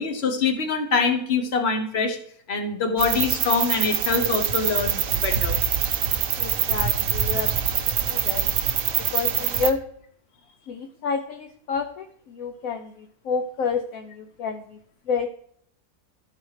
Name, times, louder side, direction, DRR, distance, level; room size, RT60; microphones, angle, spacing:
voice 1, 0.0-2.2 2.5-5.6, left 4 dB, 45° left, 6 dB, 1.0 m, -24 dB
sound 1, 3.0-9.7, right 8 dB, 60° right, 1.0 m, -24 dB
voice 2, 6.4-7.5 7.7-8.5 9.1-9.8 10.7-14.8 15.1-15.3, left 5 dB, 70° left, 5 dB, 0.8 m, -29 dB
13.0 x 4.8 x 3.1 m, 0.65 s
omnidirectional pair, 2.0 m